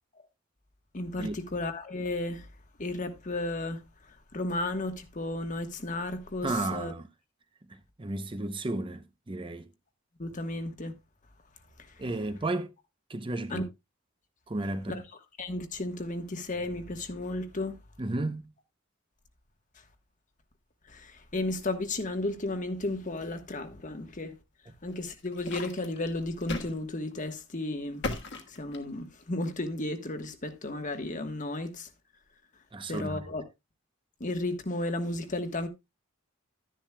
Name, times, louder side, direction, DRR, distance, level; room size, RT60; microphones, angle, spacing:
voice 1, 0.9-2.5 2.8-3.8 4.3-6.9 10.2-10.9 13.5-13.6 14.9-15.0 15.4-17.8 20.9-24.3 24.8-28.0 28.5-31.9 32.9-33.4 34.2-35.7, left 2 dB, 40° left, 1.2 m, -33 dB
voice 2, 6.4-7.1 8.0-9.7 12.0-12.7 13.1-13.7 14.5-15.0 18.0-18.5 32.7-33.2, right 2 dB, 25° right, 0.7 m, -33 dB
sound 1, 24.9-26.8 27.1-27.3 28.0-29.2, left 2 dB, 60° left, 1.4 m, -37 dB
12.0 x 10.5 x 2.2 m
head